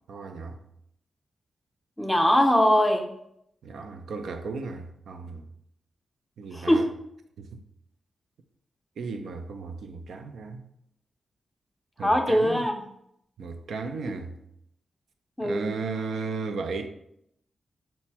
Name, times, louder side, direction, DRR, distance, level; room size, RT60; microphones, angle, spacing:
voice 1, 0.1-0.6 3.6-5.4 6.4-6.9 7.4-7.6 9.0-10.7 12.0-12.6 13.4-14.3 15.4-16.9, right 4 dB, 85° right, 0.3 m, -35 dB
voice 2, 2.0-3.1 6.5-6.8 12.0-12.7 15.4-15.7, equal, 5° left, 0.4 m, -21 dB
4.4 x 2.1 x 4.2 m
cardioid pair, 65°, 0 cm